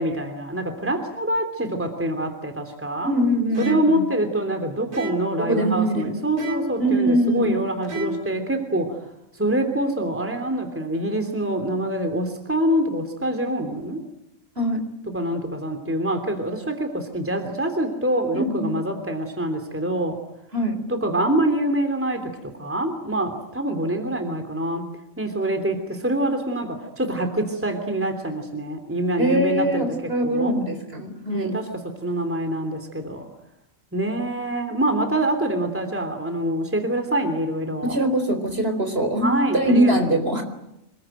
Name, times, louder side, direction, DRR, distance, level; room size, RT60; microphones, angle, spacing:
voice 1, 0.0-3.1 3.6-9.0 9.3-14.0 15.1-20.2 20.9-24.9 25.2-29.8 30.2-30.6 31.3-31.7 32.0-33.3 33.9-37.9 39.2-39.9, right 1 dB, 10° right, 6 dB, 3.2 m, -25 dB
voice 2, 3.0-4.0 5.4-6.2 6.8-7.6 14.6-14.8 18.3-18.8 20.5-20.8 29.2-31.6 37.8-40.4, right 1 dB, 50° right, 6 dB, 4.5 m, -22 dB
sound 1, 3.5-4.0 4.9-5.4 6.4-6.9 7.8-8.4, right 2 dB, 85° right, 3.3 m, -31 dB
26.5 x 22.0 x 9.2 m, 0.86 s
omnidirectional pair, 1.4 m